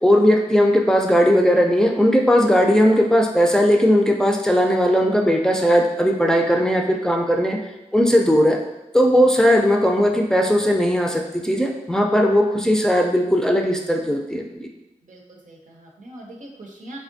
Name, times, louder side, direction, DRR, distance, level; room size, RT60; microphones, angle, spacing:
voice 1, 0.0-7.6 7.9-8.6 8.9-14.7, equal, 5° left, 1 dB, 0.5 m, -18 dB
voice 2, 15.0-17.0, right 1 dB, 90° right, -1 dB, 0.7 m, -41 dB
3.5 x 3.3 x 2.6 m, 0.99 s
cardioid pair, 55°, 13 cm